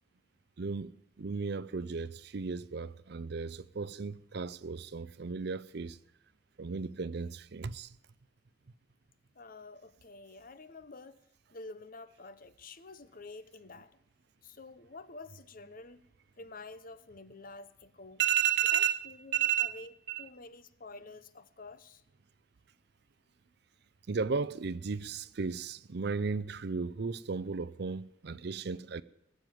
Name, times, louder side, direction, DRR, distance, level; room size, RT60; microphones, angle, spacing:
voice 1, 0.6-6.0 6.6-7.9 18.2-20.2 24.1-29.0, right 7 dB, 55° right, 0.5 m, -34 dB
voice 2, 9.3-11.2 11.5-14.0 14.4-16.0 16.4-18.2 18.7-19.9 20.2-22.0, left 3 dB, 45° left, 0.8 m, -49 dB
19.0 x 7.7 x 9.2 m
head